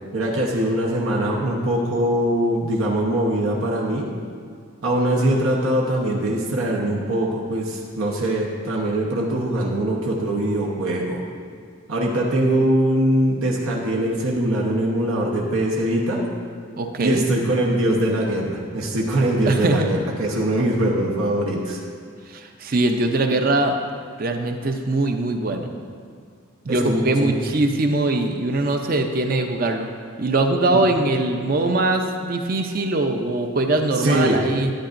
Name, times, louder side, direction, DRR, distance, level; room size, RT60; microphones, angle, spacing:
voice 1, 0.1-4.1 4.8-11.2 11.9-16.3 17.0-21.8 26.7-27.4 30.7-30.8 34.0-34.4, right 1 dB, 85° right, -2 dB, 1.0 m, -22 dB
voice 2, 16.8-17.2 19.5-20.0 22.3-23.8 24.2-25.7 26.6-29.9 30.2-34.7, right 2 dB, 45° right, 5 dB, 0.5 m, -22 dB
11.5 x 9.3 x 2.6 m, 2.1 s
head